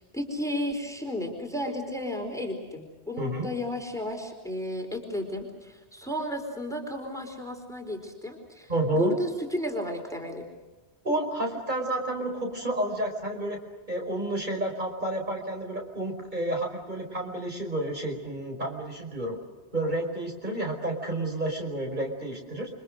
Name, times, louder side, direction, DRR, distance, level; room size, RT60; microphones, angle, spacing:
voice 1, 0.0-10.4, left 1 dB, 5° left, 3 dB, 4.3 m, -33 dB
voice 2, 3.2-3.5 8.7-9.1 11.0-13.6 13.9-19.4 19.7-22.7, right 1 dB, 45° right, 1 dB, 5.2 m, -30 dB
29.5 x 24.5 x 6.5 m, 1.2 s
omnidirectional pair, 1.1 m